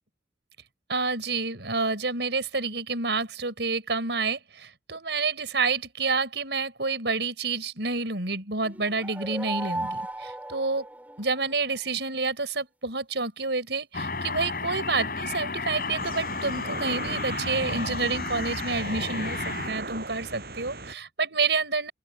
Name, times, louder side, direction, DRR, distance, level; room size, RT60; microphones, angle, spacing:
voice 1, 0.9-10.9 11.2-21.9, right 4 dB, 85° right, 4.9 m, -29 dB
sound 1, 8.6-11.5, right 1 dB, 10° right, 3.9 m, -36 dB
sound 2, 13.9-19.7, left 4 dB, 55° left, 7.1 m, -32 dB
sound 3, 16.0-20.9, right 2 dB, 60° right, 7.1 m, -37 dB
open air
head